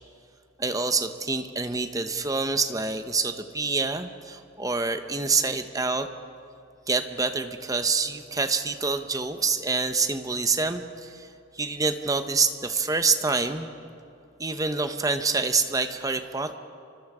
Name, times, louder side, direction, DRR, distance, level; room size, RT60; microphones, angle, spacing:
voice 1, 0.6-6.1 6.9-13.7 14.4-16.5, right 4 dB, 15° right, 9 dB, 0.9 m, -26 dB
29.5 x 25.0 x 5.0 m, 2.6 s
head